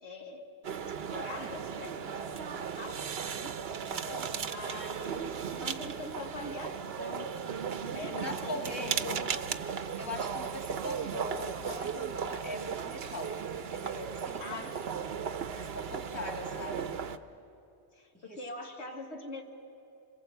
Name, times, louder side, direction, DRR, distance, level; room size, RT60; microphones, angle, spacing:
voice 1, 0.0-0.5 1.0-3.0 3.3-3.6 4.3-7.3 7.9-9.4 14.4-14.8 17.9-19.4, left 3 dB, 70° left, 2 dB, 1.7 m, -43 dB
sound 1, 0.6-17.2, right 7 dB, 65° right, 1.0 m, -36 dB
voice 2, 3.7-4.3 8.2-8.9 10.0-13.3 13.7-14.7 15.5-16.9 18.1-18.4, left 1 dB, 15° left, 1 dB, 2.7 m, -41 dB
27.0 x 21.5 x 8.0 m, 2.7 s
omnidirectional pair, 1.2 m